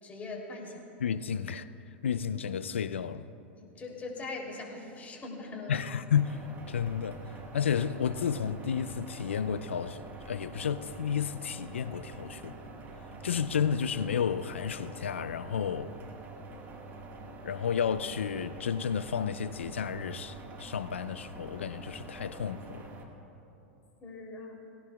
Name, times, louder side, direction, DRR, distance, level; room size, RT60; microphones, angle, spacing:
voice 1, 0.0-0.9 3.6-5.8 24.0-24.7, left 3 dB, 25° left, 3.3 m, -41 dB
voice 2, 1.0-1.7 2.0-3.3 5.7-12.6 13.2-15.9 17.4-22.9, left 7 dB, 80° left, 0.5 m, -32 dB
sound 1, 6.1-23.0, right 3 dB, 30° right, 1.7 m, -46 dB
18.5 x 17.0 x 2.4 m
hypercardioid pair, 95°, 6 cm